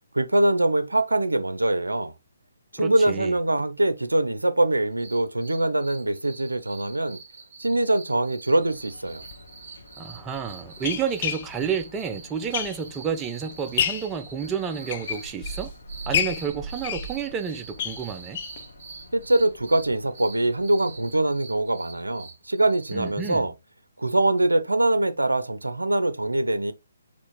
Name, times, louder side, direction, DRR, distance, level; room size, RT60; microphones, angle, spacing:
voice 1, 0.1-2.1 2.7-7.2 7.6-9.2 19.1-23.5 24.0-26.7, right 1 dB, 85° right, 0.5 m, -23 dB
voice 2, 2.8-3.3 10.0-15.7 16.1-18.4 22.9-23.5, right 7 dB, 15° right, 0.5 m, -30 dB
sound 1, 4.9-23.4, right 5 dB, 50° right, 1.4 m, -45 dB
sound 2, 8.6-21.3, right 1 dB, 70° left, 1.2 m, -45 dB
sound 3, 9.2-9.4 10.1-13.1 13.5-14.2 14.7-15.7 16.1-18.6 19.0-19.1 19.4-19.5 19.8-19.9, left 9 dB, 40° left, 0.4 m, -30 dB
4.2 x 3.1 x 3.0 m
figure-of-eight pair, 140°, 0 cm